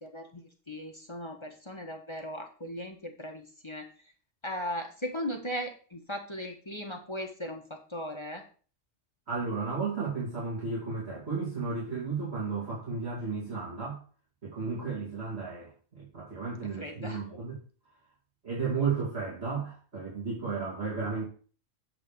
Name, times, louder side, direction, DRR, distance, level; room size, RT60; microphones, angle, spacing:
voice 1, 0.0-3.9 4.4-8.4 16.7-17.2, equal, 25° left, 3 dB, 1.1 m, -38 dB
voice 2, 9.3-14.0 14.4-17.6 18.4-21.2, right 4 dB, 55° right, -7 dB, 3.1 m, -33 dB
8.6 x 3.5 x 6.8 m, 0.39 s
omnidirectional pair, 1.3 m